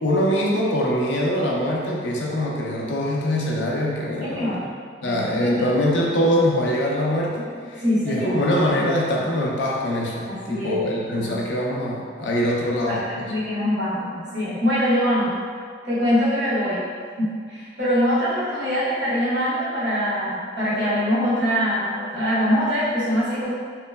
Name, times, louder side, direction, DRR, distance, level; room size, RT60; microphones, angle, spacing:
voice 1, 0.0-4.7 5.0-13.3, left 1 dB, 75° left, -3 dB, 0.4 m, -23 dB
voice 2, 4.2-4.7 5.0-5.7 7.8-8.4 8.7-8.9 10.3-10.9 11.1-11.3 12.9-15.4 15.8-16.9 17.2-23.5, equal, 65° right, -11 dB, 1.0 m, -23 dB
2.9 x 2.0 x 2.2 m, 2.1 s
head